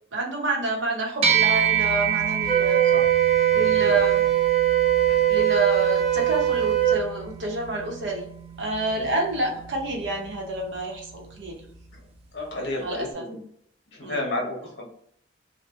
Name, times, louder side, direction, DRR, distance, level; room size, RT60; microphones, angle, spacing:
voice 1, 0.1-2.8 3.5-4.3 5.3-8.3 8.6-11.6 12.8-13.2 14.0-14.2, right 1 dB, 80° right, 1 dB, 0.7 m, -28 dB
sound 1, 1.2-10.8, right 8 dB, 35° right, 0.3 m, -29 dB
Wind instrument woodwind instrument, 2.4-7.0, right 12 dB, 10° left, 0.8 m, -21 dB
voice 2, 12.3-13.4 13.9-14.8, left 2 dB, 65° left, -1 dB, 0.9 m, -32 dB
2.5 x 2.1 x 2.3 m, 0.67 s
head